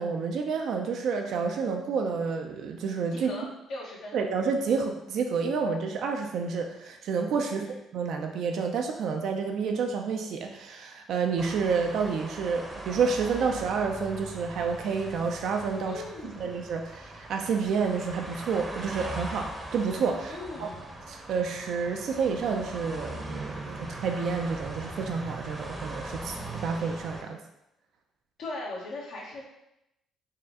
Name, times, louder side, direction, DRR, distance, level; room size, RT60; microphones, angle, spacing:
voice 1, 0.0-3.3 4.1-20.7 21.1-27.4, right 5 dB, 70° right, 3 dB, 0.5 m, -29 dB
voice 2, 3.1-3.4 3.7-4.1 7.4-7.7 15.8-16.6 20.3-20.8 28.4-29.4, left 2 dB, 75° left, -4 dB, 1.1 m, -39 dB
sound 1, 11.4-27.2, right 1 dB, 20° right, 0.7 m, -40 dB
4.2 x 2.3 x 3.7 m, 0.86 s
cardioid pair, 85°, 0 cm